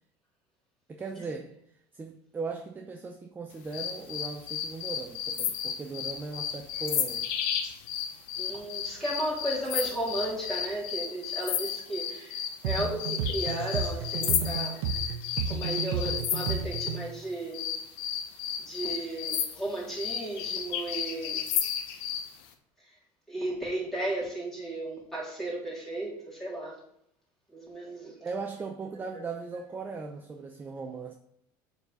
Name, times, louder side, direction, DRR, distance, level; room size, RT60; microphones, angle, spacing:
voice 1, 0.9-7.3 28.2-31.1, right 4 dB, 20° right, 4 dB, 0.7 m, -38 dB
sound 1, 3.7-17.0 17.5-22.3, left 8 dB, 75° left, 1.0 m, -33 dB
voice 2, 8.4-14.8 15.5-17.7 18.6-21.5 23.3-26.8 27.5-28.2 29.1-29.2, right 1 dB, 5° left, -6 dB, 3.6 m, -34 dB
sound 2, 12.6-17.2, right 6 dB, 85° right, 0.8 m, -32 dB
7.2 x 4.1 x 6.7 m, 0.74 s
supercardioid pair, 125°, 10 cm